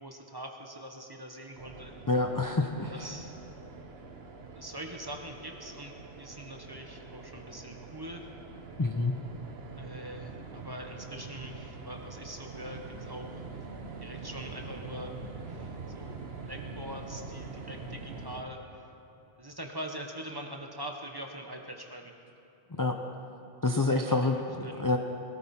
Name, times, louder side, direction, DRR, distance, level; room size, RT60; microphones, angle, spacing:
voice 1, 0.0-1.9 2.9-3.3 4.5-8.3 9.8-13.4 14.0-15.1 15.4-16.2 16.4-18.6 19.4-22.1 24.0-24.9, equal, 25° right, 2 dB, 1.1 m, -43 dB
sound 1, 1.6-18.4, right 4 dB, 75° right, 1.3 m, -44 dB
voice 2, 2.1-3.1 8.8-9.1 22.7-23.0 23.6-25.0, left 3 dB, 25° left, 3 dB, 0.6 m, -28 dB
20.5 x 13.5 x 4.3 m, 2.7 s
omnidirectional pair, 1.1 m